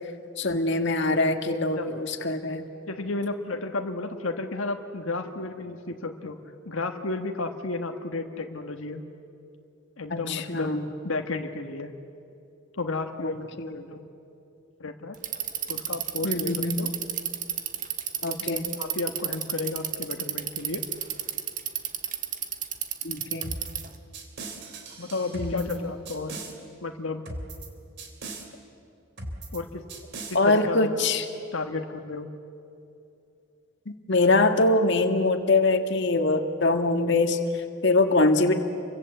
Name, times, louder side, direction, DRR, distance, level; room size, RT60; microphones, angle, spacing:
voice 1, 0.4-2.6 10.1-10.8 13.2-13.3 13.6-13.7 16.2-16.8 18.2-18.7 23.0-23.6 25.3-25.7 30.3-31.3 34.1-38.6, left 2 dB, 60° left, 5 dB, 1.7 m, -23 dB
voice 2, 2.9-6.4 6.6-9.0 10.0-11.9 12.8-14.1 14.8-15.2 15.7-16.9 18.8-20.8 24.9-26.4 26.8-27.2 29.5-29.8 30.4-31.2 31.5-32.3, left 3 dB, 80° left, 4 dB, 1.5 m, -32 dB
Bicycle, 15.1-23.9, right 10 dB, 40° right, 1.5 m, -31 dB
sound 1, 23.4-23.8 24.1-25.8 26.1-26.5 27.3-27.7 28.0-28.5 29.2-29.6 29.9-30.4, right 2 dB, 55° right, 3.3 m, -38 dB
30.0 x 24.5 x 7.9 m, 2.6 s
head